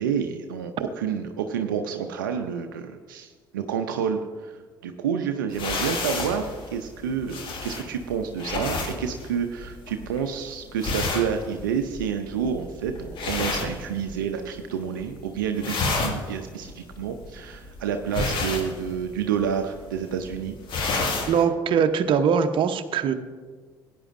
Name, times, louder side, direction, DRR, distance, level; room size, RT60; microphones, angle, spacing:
voice 1, 0.0-4.6 4.8-20.6, right 7 dB, 85° right, 6 dB, 0.6 m, -29 dB
sound 1, 5.5-14.5 14.8-15.2 15.5-21.4, left 3 dB, 50° left, 2.0 m, -31 dB
voice 2, 21.3-23.1, right 7 dB, 50° right, 8 dB, 0.8 m, -22 dB
17.0 x 9.4 x 2.6 m, 1.5 s
hypercardioid pair, 55°, 11 cm